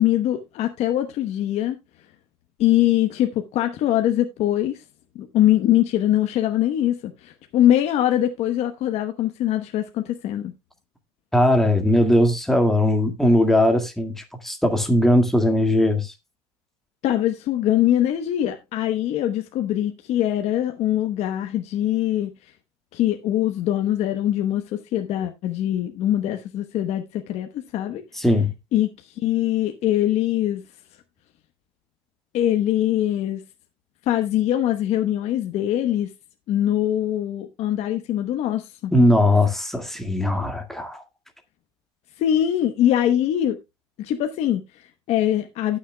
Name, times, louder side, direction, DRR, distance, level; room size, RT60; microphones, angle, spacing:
voice 1, 0.0-1.8 2.6-4.8 5.1-10.5 17.0-22.5 22.9-28.0 28.7-30.6 32.3-33.4 34.1-36.1 36.5-38.9 42.2-43.6 44.0-45.8, left 12 dB, 50° left, 1.0 m, -22 dB
voice 2, 11.3-16.1 28.1-28.5 38.9-41.0, left 1 dB, ahead, 1.9 m, -19 dB
17.5 x 6.4 x 2.2 m
supercardioid pair, 120°, 14 cm